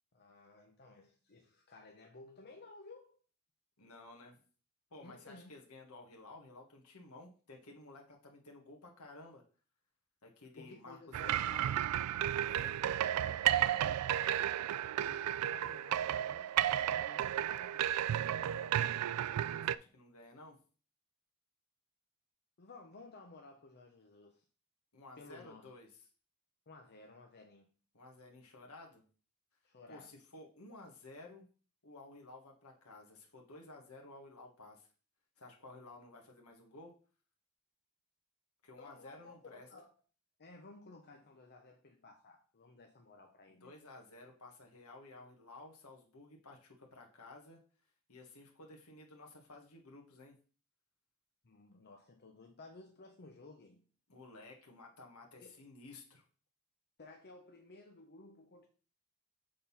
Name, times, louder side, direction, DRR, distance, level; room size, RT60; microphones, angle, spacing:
voice 1, 0.1-3.2 5.0-5.5 10.6-11.4 15.0-18.3 22.6-24.4 25.2-25.7 26.7-27.7 29.6-30.1 38.8-39.9 40.4-43.7 51.4-53.8 55.4-55.6 57.0-58.7, left 3 dB, 50° left, 0.8 m, -56 dB
voice 2, 3.8-4.4 4.9-9.4 10.2-11.8 12.4-12.8 19.6-20.6 24.9-25.9 27.9-29.0 29.9-31.5 31.8-34.9 35.4-36.9 38.6-39.7 43.6-47.6 48.1-50.4 54.1-56.2, left 2 dB, 75° left, 1.5 m, -54 dB
sound 1, 11.1-19.7, right 11 dB, 85° right, 0.3 m, -33 dB
6.7 x 3.8 x 5.6 m
head